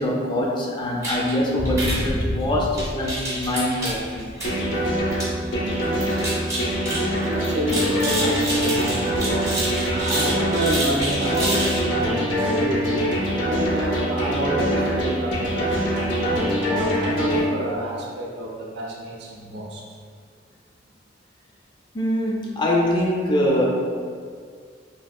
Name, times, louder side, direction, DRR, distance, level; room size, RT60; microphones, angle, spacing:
voice 1, 0.0-4.3 21.9-23.6, left 1 dB, 25° left, -2 dB, 0.3 m, -23 dB
sound 1, 1.0-11.8, right 1 dB, 15° right, 0.7 m, -29 dB
sound 2, 4.4-17.4, equal, 70° left, 0.6 m, -24 dB
voice 2, 5.9-6.3 6.9-13.0 13.4-16.2 16.4-19.8, right 1 dB, 60° right, -2 dB, 0.5 m, -29 dB
3.3 x 2.6 x 2.3 m, 2.1 s
head